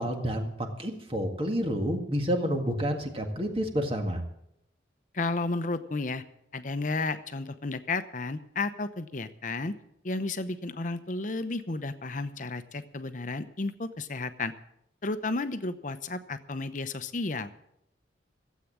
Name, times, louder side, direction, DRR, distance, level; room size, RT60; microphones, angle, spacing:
voice 1, 0.0-4.2, equal, 30° right, 4 dB, 1.9 m, -29 dB
voice 2, 5.1-6.2 6.5-9.7 10.0-14.5 15.0-17.5, left 3 dB, 45° left, 11 dB, 0.8 m, -32 dB
16.0 x 8.5 x 7.4 m, 0.77 s
head